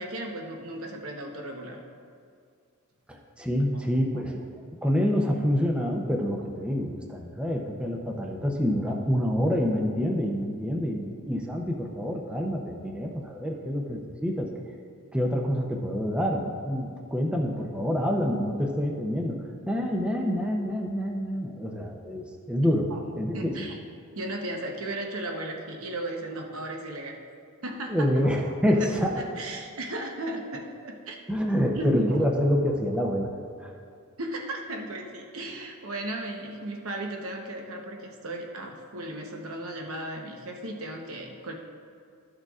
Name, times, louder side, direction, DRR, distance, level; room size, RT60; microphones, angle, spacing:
voice 1, 0.0-1.8 3.7-3.8 8.9-9.0 22.9-23.0 23.3-23.8 24.1-27.2 27.6-28.5 28.8-28.9 29.2-31.2 31.8-32.3 34.2-41.5, right 1 dB, 65° right, 2 dB, 0.9 m, -35 dB
voice 2, 3.1-4.4 4.8-14.5 15.1-23.7 27.9-29.1 31.3-33.3 33.6-33.7, equal, 5° right, 0 dB, 0.5 m, -27 dB
13.5 x 6.5 x 2.4 m, 2.2 s
head